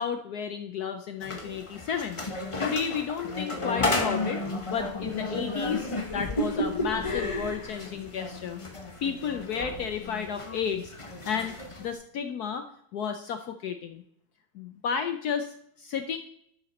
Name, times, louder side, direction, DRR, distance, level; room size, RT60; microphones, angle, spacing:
voice 1, 0.0-2.2 2.6-4.4 4.7-8.6 9.0-10.9 11.2-12.6 12.9-14.0 14.5-16.2, left 7 dB, 75° left, 7 dB, 0.9 m, -32 dB
sound 1, 1.2-11.9, left 2 dB, 30° left, 0.5 m, -32 dB
12.0 x 8.0 x 4.1 m, 0.69 s
omnidirectional pair, 2.3 m